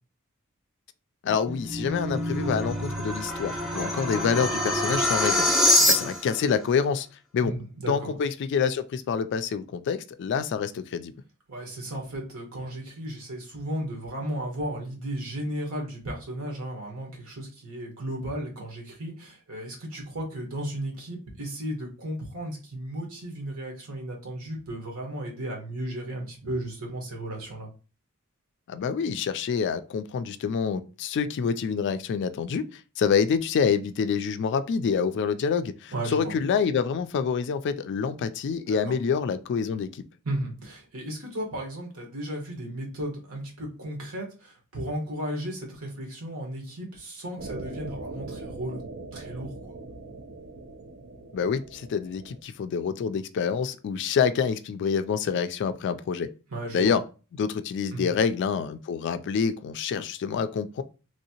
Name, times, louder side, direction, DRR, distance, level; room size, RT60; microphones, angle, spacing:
voice 1, 1.2-5.5 5.9-7.1 7.3-7.5 7.9-11.1 28.7-40.0 51.3-56.3 56.7-57.0 57.3-60.8, left 6 dB, 55° left, 0.3 m, -27 dB
sound 1, 1.5-6.4, left 1 dB, ahead, 0.7 m, -25 dB
voice 2, 7.4-8.2 11.5-27.7 35.9-36.3 38.7-39.0 40.2-48.8 49.1-49.7 56.5-56.9 57.9-58.1, right 1 dB, 75° right, 1.3 m, -35 dB
sound 2, 47.4-52.4, right 2 dB, 55° right, 0.4 m, -41 dB
3.1 x 2.7 x 2.8 m
head